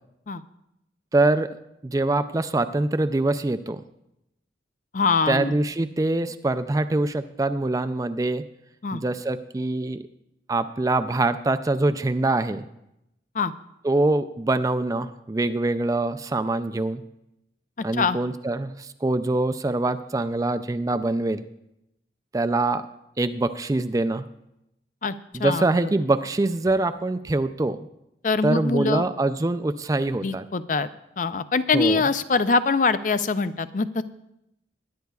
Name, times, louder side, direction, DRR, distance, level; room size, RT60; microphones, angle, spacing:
voice 1, 1.1-1.5 1.8-3.8 5.3-8.4 8.9-10.0 10.5-12.6 13.8-17.0 17.8-21.4 22.3-22.8 23.2-24.2 25.3-27.8 28.4-30.4 31.7-32.0, right 2 dB, 20° right, 11 dB, 0.3 m, -24 dB
voice 2, 4.9-5.5 8.8-9.0 13.4-13.5 18.0-18.2 25.0-25.1 25.4-25.8 28.2-29.1 30.2-30.9 31.2-34.0, left 4 dB, 45° left, 13 dB, 0.4 m, -23 dB
21.0 x 10.5 x 2.3 m, 0.84 s
head